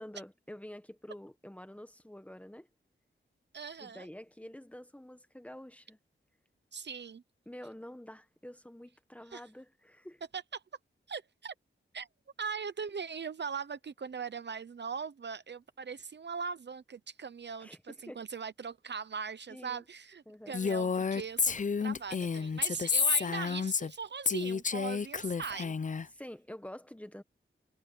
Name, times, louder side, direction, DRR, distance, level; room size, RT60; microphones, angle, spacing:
voice 1, 0.0-2.7 3.8-6.0 7.5-10.2 17.6-18.2 19.5-19.8 20.3-20.6 26.1-27.2, left 1 dB, 5° left, 1.4 m, -48 dB
voice 2, 3.5-4.1 6.7-7.2 9.3-9.4 10.3-10.6 11.1-11.5 11.9-12.1 12.4-25.7, right 6 dB, 60° right, 0.8 m, -40 dB
Female speech woman speaking, 20.5-24.0 24.3-26.0, left 5 dB, 40° left, 0.6 m, -30 dB
wide cardioid pair, 125°, 21 cm